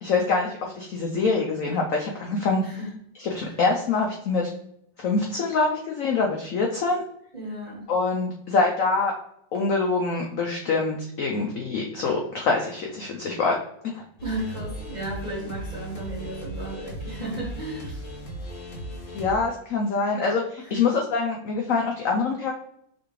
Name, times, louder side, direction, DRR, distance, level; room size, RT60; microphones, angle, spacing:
voice 1, 0.0-2.6 3.2-4.5 5.0-7.0 7.9-9.1 9.5-13.6 13.8-14.0 19.1-22.5, left 4 dB, 70° left, 1 dB, 0.7 m, -25 dB
voice 2, 7.3-7.8 14.2-18.0 20.6-20.9, right 1 dB, 25° right, -4 dB, 1.2 m, -34 dB
sound 1, 14.2-19.4, right 1 dB, 50° left, 1.2 m, -37 dB
4.9 x 3.5 x 3.1 m, 0.73 s
omnidirectional pair, 2.1 m